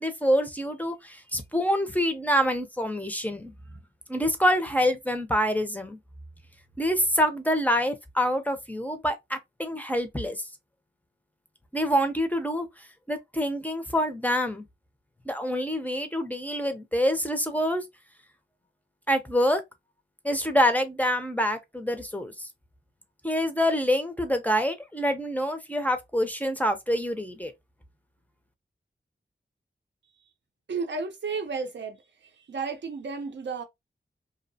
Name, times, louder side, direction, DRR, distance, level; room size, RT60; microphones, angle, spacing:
voice 1, 0.0-3.5 4.1-6.0 6.8-10.4 11.7-12.7 13.1-14.6 15.3-17.8 19.1-19.6 20.2-22.5 23.2-27.5, equal, 10° left, 0.4 m, -26 dB
voice 2, 30.7-32.0 32.2-33.6, right 4 dB, 75° right, 0.6 m, -33 dB
2.7 x 2.0 x 2.6 m
wide cardioid pair, 110°, 18 cm